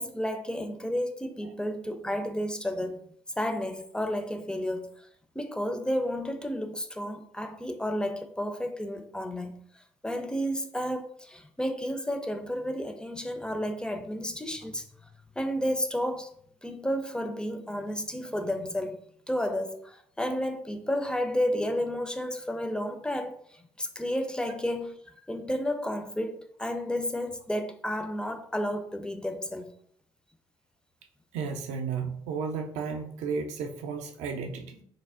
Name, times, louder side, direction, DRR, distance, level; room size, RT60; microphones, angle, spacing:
voice 1, 0.0-3.0 3.4-5.1 5.4-14.8 15.4-16.3 16.6-19.0 19.3-25.0 25.3-29.7, equal, 5° left, 0.4 m, -32 dB
voice 2, 31.3-34.8, right 5 dB, 70° right, 0.5 m, -33 dB
3.2 x 2.1 x 2.4 m
hypercardioid pair, 50°, 12 cm